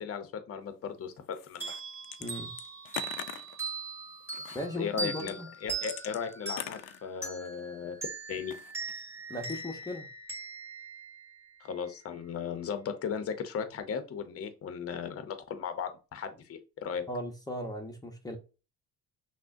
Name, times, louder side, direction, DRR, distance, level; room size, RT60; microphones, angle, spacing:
voice 1, 0.0-1.7 4.8-8.0 8.3-8.5 11.6-17.0, left 7 dB, 45° left, 0.7 m, -36 dB
sound 1, 1.3-2.3 2.6-3.6 4.3-4.7 5.2-7.6 8.4-9.0 9.4-9.8, left 13 dB, 80° left, 0.5 m, -42 dB
sound 2, 1.6-11.9, right 4 dB, 5° right, 1.6 m, -40 dB
voice 2, 2.2-2.5 4.5-5.5 9.3-10.1 17.1-18.4, left 1 dB, 10° left, 0.7 m, -37 dB
5.9 x 2.1 x 2.6 m
cardioid pair, 115°, 33 cm